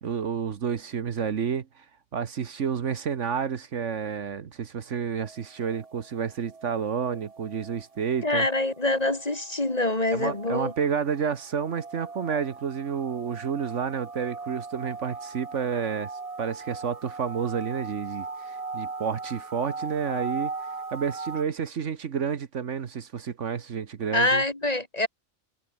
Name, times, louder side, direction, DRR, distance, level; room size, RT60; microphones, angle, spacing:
voice 1, 0.0-1.8 2.1-8.5 10.1-16.1 16.4-20.5 20.9-24.4, right 7 dB, 65° right, 1.4 m, -30 dB
sound 1, 5.2-21.4, right 3 dB, 30° right, 1.3 m, -39 dB
voice 2, 8.2-10.7 24.1-25.1, left 2 dB, 30° left, 2.4 m, -25 dB
omnidirectional pair, 1.4 m